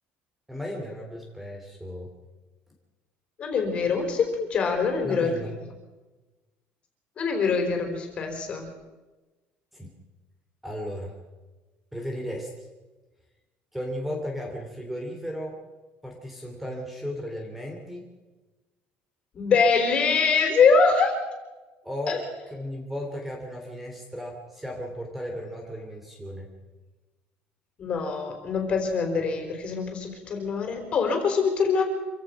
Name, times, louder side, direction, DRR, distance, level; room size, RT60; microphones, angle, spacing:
voice 1, 0.5-2.1 5.0-5.5 9.7-9.9 10.6-11.1 11.9-12.7 13.7-15.6 16.0-18.0 21.8-22.2 22.5-26.5, equal, 5° right, 2 dB, 2.8 m, -35 dB
voice 2, 3.4-5.3 7.2-8.7 19.3-21.1 22.1-22.2 27.8-31.8, left 5 dB, 30° left, 4 dB, 4.5 m, -24 dB
26.5 x 16.5 x 6.1 m, 1.2 s
cardioid pair, 175°, 4 cm